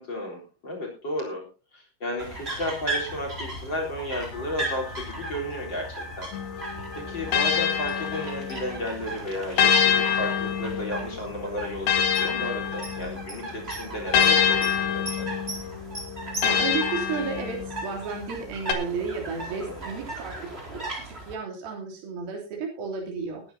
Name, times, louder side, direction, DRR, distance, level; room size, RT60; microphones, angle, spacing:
voice 1, 0.0-1.5 1.7-6.3 6.5-15.3 19.5-19.8, left 1 dB, 25° left, 2 dB, 4.1 m, -33 dB
sound 1, 2.2-21.3, right 2 dB, 15° right, 4.0 m, -37 dB
sound 2, 4.3-9.3, left 5 dB, 45° left, 4.7 m, -46 dB
sound 3, 6.3-8.8 9.6-13.4 14.1-17.9 18.7-18.8, left 8 dB, 65° left, 3.1 m, -26 dB
voice 2, 16.4-20.3 20.7-23.4, right 5 dB, 60° right, -1 dB, 5.0 m, -33 dB
21.0 x 10.5 x 2.8 m, 0.33 s
omnidirectional pair, 5.0 m